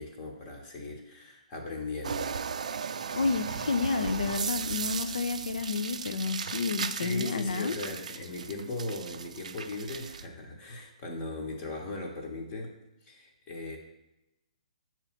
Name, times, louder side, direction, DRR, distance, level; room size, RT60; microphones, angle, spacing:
voice 1, 0.0-2.4 6.9-12.7 13.0-13.8, left 2 dB, 25° left, 1 dB, 1.1 m, -38 dB
sound 1, 2.0-10.3, right 6 dB, 70° right, 0.4 m, -36 dB
voice 2, 3.1-7.7, left 4 dB, 75° left, 10 dB, 0.6 m, -30 dB
6.8 x 3.1 x 5.8 m, 0.92 s
hypercardioid pair, 150°, 4 cm